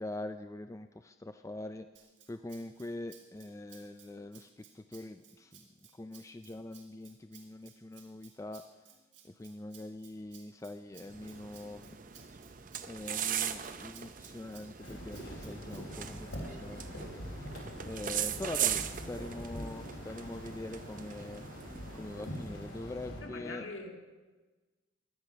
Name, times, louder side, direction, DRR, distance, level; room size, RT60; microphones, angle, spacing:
voice 1, 0.0-1.9 2.3-5.7 5.9-8.6 9.2-12.0 12.9-17.1 17.3-17.5 17.9-21.4 21.9-23.7, left 2 dB, 15° left, 0.3 m, -43 dB
Rattle (instrument), 2.0-16.4, right 8 dB, 65° right, 2.2 m, -59 dB
sound 1, 11.0-22.8, right 10 dB, 40° right, 0.6 m, -39 dB
sound 2, 14.8-23.2, equal, 85° left, 4.2 m, -44 dB
voice 2, 23.2-23.9, left 3 dB, 70° left, 2.2 m, -42 dB
16.5 x 11.0 x 5.8 m
head